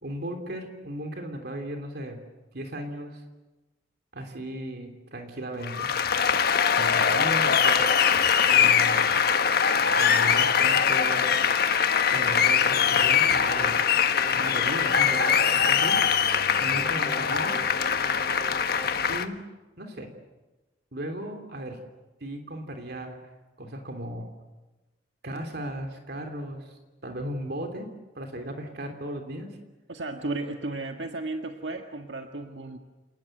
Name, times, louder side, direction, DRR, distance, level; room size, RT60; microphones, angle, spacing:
voice 1, 0.0-2.2 2.5-3.2 4.1-5.9 6.8-7.9 8.5-9.1 9.9-11.4 12.1-13.8 14.3-16.0 16.6-17.6 19.1-19.4 19.8-20.1 20.9-21.8 22.2-23.2 23.6-24.3 25.2-29.6, right 1 dB, 60° right, 5 dB, 3.2 m, -36 dB
Applause, 5.6-19.3, left 7 dB, 60° left, 1.3 m, -22 dB
Piano, 12.7-13.8 14.2-15.3 15.9-19.2, equal, 15° left, 5.8 m, -42 dB
voice 2, 29.9-32.8, right 2 dB, 85° right, 4 dB, 1.7 m, -34 dB
29.0 x 19.5 x 9.1 m, 1.1 s
head